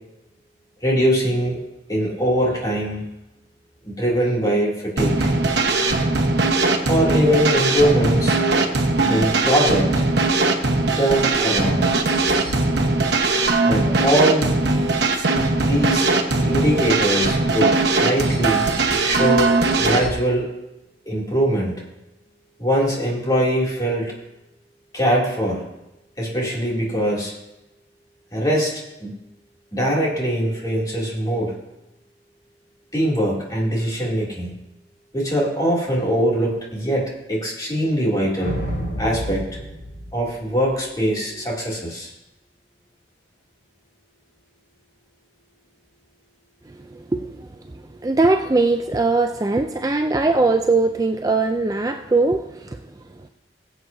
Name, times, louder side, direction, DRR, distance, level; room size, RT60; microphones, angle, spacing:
voice 1, 0.8-1.6 1.9-3.1 3.8-5.3 6.8-8.4 9.1-10.1 11.0-11.9 13.6-14.5 15.6-16.1 16.4-18.7 19.0-20.5 21.1-21.8 22.6-24.1 24.9-25.6 26.2-27.3 28.3-29.1 29.7-31.6 32.9-34.5 35.1-38.6 39.0-39.5 40.1-42.1, equal, 20° left, -4 dB, 2.7 m, -22 dB
sound 1, 5.0-20.1, right 3 dB, 70° right, 1.2 m, -20 dB
sound 2, 38.4-40.9, equal, 85° left, 3.6 m, -30 dB
voice 2, 48.0-52.7, right 3 dB, 20° right, 6 dB, 0.4 m, -20 dB
20.5 x 8.1 x 2.7 m, 0.93 s
head